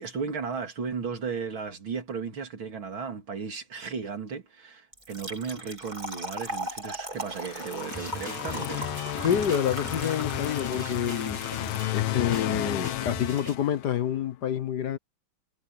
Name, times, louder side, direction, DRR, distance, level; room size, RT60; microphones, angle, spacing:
voice 1, 0.0-8.8, right 5 dB, 80° right, 3.7 m, -35 dB
Trickle dribble / Fill (with liquid), 4.9-12.4, right 1 dB, 20° right, 3.3 m, -39 dB
sound 1, 7.3-14.2, left 15 dB, 90° left, 1.5 m, -33 dB
sound 2, 7.9-13.5, equal, 10° left, 3.5 m, -40 dB
voice 2, 9.2-15.0, left 9 dB, 60° left, 1.5 m, -28 dB
omnidirectional pair, 2.2 m